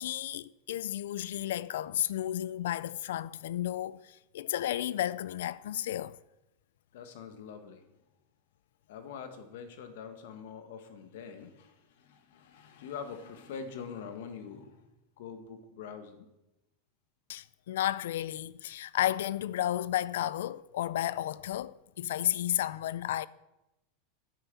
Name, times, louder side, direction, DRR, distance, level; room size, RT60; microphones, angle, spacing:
voice 1, 0.0-6.2 17.3-23.3, left 12 dB, 80° left, 0.4 m, -32 dB
voice 2, 6.9-7.8 8.9-14.9 15.2-16.2, left 6 dB, 65° left, 1.6 m, -44 dB
9.5 x 8.3 x 6.8 m
supercardioid pair, 175°, 0 cm